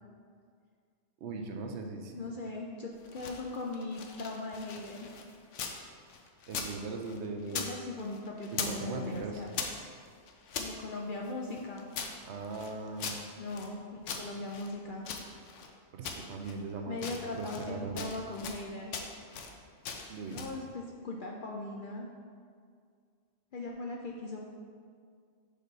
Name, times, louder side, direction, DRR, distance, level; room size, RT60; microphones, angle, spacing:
voice 1, 1.2-2.3 6.5-7.8 8.5-9.4 12.3-13.2 15.9-18.1 20.1-20.5, right 4 dB, 70° right, 3 dB, 0.9 m, -39 dB
voice 2, 2.1-5.1 7.5-9.5 10.6-11.9 13.4-15.1 16.9-19.0 20.3-22.1 23.5-24.4, left 2 dB, 60° left, 0 dB, 0.5 m, -39 dB
sound 1, 2.9-5.8 6.1-7.7 8.0-8.8 9.1-10.7 11.2-13.7 14.0-15.7 16.0-16.6 16.9-17.7 18.0-18.6 18.9-19.5 19.8-20.6, left 6 dB, 75° left, 0.9 m, -40 dB
5.4 x 5.2 x 3.9 m, 2.1 s
omnidirectional pair, 1.3 m